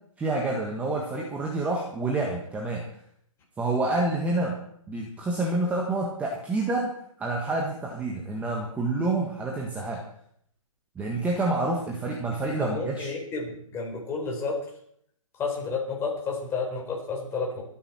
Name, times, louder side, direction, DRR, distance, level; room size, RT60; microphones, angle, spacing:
voice 1, 0.2-2.8 3.6-4.6 4.9-6.9 7.2-10.0 10.9-13.1, right 2 dB, 10° right, -1 dB, 1.6 m, -28 dB
voice 2, 12.6-14.6 15.4-17.6, left 4 dB, 15° left, -1 dB, 4.3 m, -31 dB
25.5 x 10.0 x 4.4 m, 0.66 s
hypercardioid pair, 150°, 18 cm